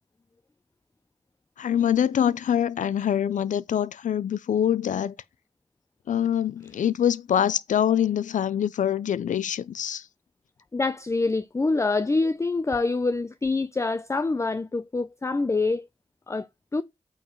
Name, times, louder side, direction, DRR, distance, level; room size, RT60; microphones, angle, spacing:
voice 1, 1.6-5.1 6.1-10.1, left 9 dB, 90° left, 0.4 m, -24 dB
voice 2, 10.7-15.9 16.3-16.5 16.7-16.8, left 3 dB, 25° left, 0.4 m, -25 dB
8.4 x 3.0 x 5.3 m
cardioid pair, 45°, 13 cm